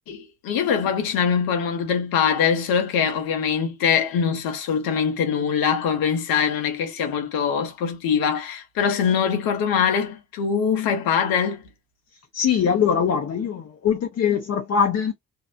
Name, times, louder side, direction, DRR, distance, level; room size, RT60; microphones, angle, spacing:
voice 1, 0.1-11.6, left 7 dB, 75° left, 0.8 m, -23 dB
voice 2, 12.3-15.1, left 7 dB, 45° left, 0.6 m, -22 dB
2.7 x 2.0 x 2.4 m
hypercardioid pair, 50°, 36 cm